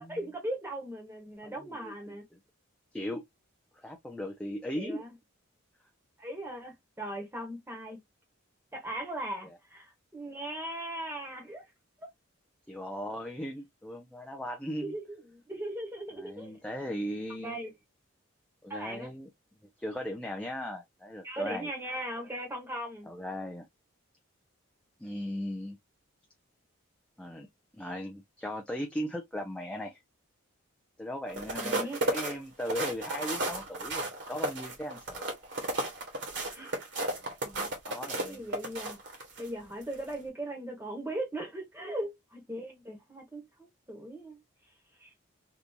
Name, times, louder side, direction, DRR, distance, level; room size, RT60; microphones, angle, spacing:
voice 1, 0.0-2.2 4.8-5.1 6.2-8.0 8.7-11.6 12.0-12.1 14.8-16.6 17.4-17.7 18.7-19.1 21.2-23.1 31.5-32.0 36.5-36.7 37.4-37.7 38.3-39.0 39.4-44.4 45.0-45.1, right 1 dB, 10° right, 1.1 m, -39 dB
voice 2, 1.4-1.9 2.9-3.2 3.7-5.0 9.4-9.6 12.7-14.9 16.2-17.6 18.6-19.3 19.8-21.7 23.1-23.7 25.0-25.8 27.2-27.5 27.7-30.0 31.0-35.3 37.9-38.6, equal, 5° left, 0.3 m, -38 dB
sound 1, 31.3-39.5 39.9-40.1, right 2 dB, 55° right, 1.4 m, -33 dB
3.5 x 2.6 x 2.7 m
head